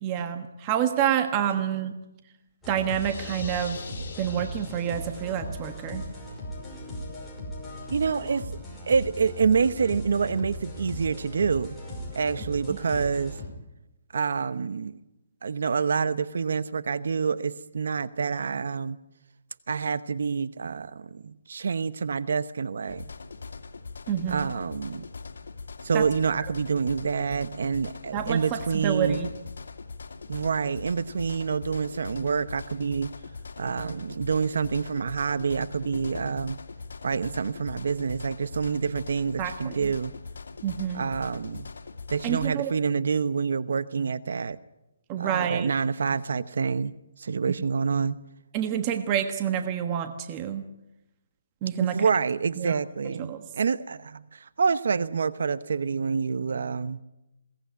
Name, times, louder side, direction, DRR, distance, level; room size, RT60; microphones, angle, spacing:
voice 1, 0.0-1.9 2.7-3.8 4.2-6.0 24.1-24.5 25.9-26.0 28.1-29.3 39.4-39.8 40.6-41.0 42.2-42.7 45.1-45.7 48.5-50.6 51.6-52.1 52.6-52.7 53.2-53.4, right 9 dB, 20° right, 8 dB, 1.3 m, -28 dB
sound 1, 2.6-13.5, equal, 5° left, 5.4 m, -38 dB
sound 2, 2.9-5.4, left 5 dB, 50° left, 5.6 m, -43 dB
voice 2, 7.9-8.5 8.9-11.8 12.1-13.4 14.1-14.9 15.4-19.0 19.7-23.1 24.3-25.1 25.8-29.2 30.3-33.1 33.6-36.6 37.0-40.1 40.9-41.7 42.1-44.6 45.2-48.2 51.8-57.0, right 5 dB, 65° right, 15 dB, 0.9 m, -27 dB
sound 3, 22.9-42.5, left 4 dB, 80° left, 2.5 m, -41 dB
21.5 x 18.5 x 9.4 m, 0.93 s
hypercardioid pair, 165°, 0 cm